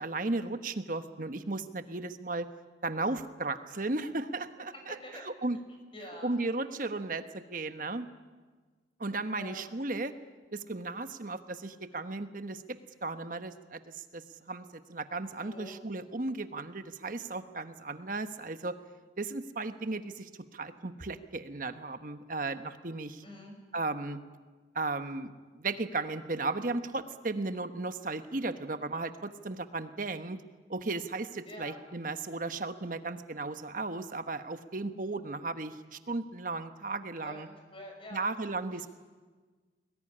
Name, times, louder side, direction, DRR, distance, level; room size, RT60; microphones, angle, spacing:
voice 1, 0.0-2.5 2.8-5.6 6.2-7.2 7.5-8.1 9.0-10.1 10.5-18.8 19.2-23.2 23.7-24.2 24.7-30.4 30.7-37.5 38.1-38.9, right 3 dB, 45° right, 9 dB, 1.2 m, -35 dB
voice 2, 4.7-5.3 5.9-6.4 9.3-9.6 15.4-15.8 23.2-23.6 31.5-31.8 37.2-38.2 38.7-38.9, left 1 dB, 30° left, 3 dB, 5.6 m, -46 dB
22.5 x 20.0 x 9.9 m, 1.4 s
head